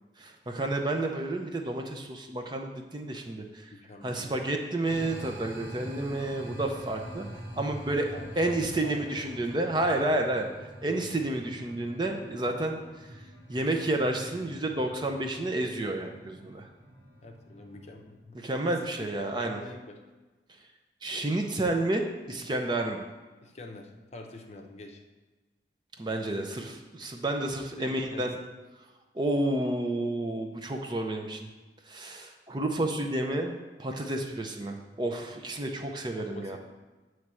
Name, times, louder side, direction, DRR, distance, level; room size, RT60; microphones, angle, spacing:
voice 1, 0.2-3.7 4.0-7.3 7.6-10.5 10.8-12.8 13.5-16.7 18.3-19.6 21.0-23.0 26.0-28.4 29.2-31.5 31.9-33.5 33.8-36.6, right 1 dB, 25° right, 3 dB, 0.5 m, -30 dB
voice 2, 3.7-4.4 8.1-9.5 17.2-18.4 18.6-20.0 23.4-25.0 27.7-28.3 36.2-36.6, left 2 dB, 40° left, 3 dB, 0.7 m, -45 dB
sound 1, 4.8-18.1, equal, 90° right, 1.3 m, -45 dB
8.1 x 3.2 x 6.1 m, 1.2 s
head